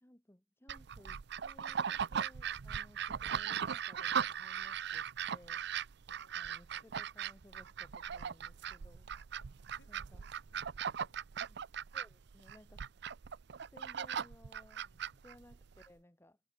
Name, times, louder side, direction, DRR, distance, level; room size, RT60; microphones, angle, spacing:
voice 1, 0.0-5.6 6.3-9.1 9.9-10.3 11.4-11.6 11.9-12.9 13.7-14.8 15.2-16.4, left 1 dB, 10° left, 1.1 m, -60 dB
sound 1, 0.7-15.9, right 8 dB, 60° right, 0.5 m, -39 dB
voice 2, 2.9-3.3 6.1-6.9 9.4-11.3 14.8-15.2, left 2 dB, 65° left, 7.2 m, -71 dB
head